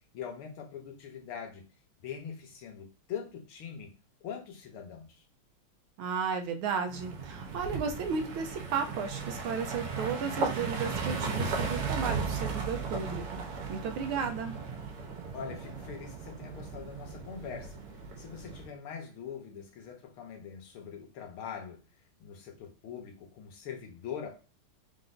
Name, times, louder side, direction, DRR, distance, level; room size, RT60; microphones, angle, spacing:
voice 1, 0.1-1.6 2.0-3.9 4.2-5.2 15.3-17.8 18.2-21.8 22.2-24.3, left 7 dB, 75° left, 3 dB, 1.8 m, -42 dB
voice 2, 6.0-13.2 13.7-14.6, right 6 dB, 75° right, 5 dB, 1.5 m, -34 dB
sound 1, 6.9-18.7, right 4 dB, 90° right, 1.9 m, -36 dB
4.5 x 3.9 x 2.6 m, 0.32 s
omnidirectional pair, 2.4 m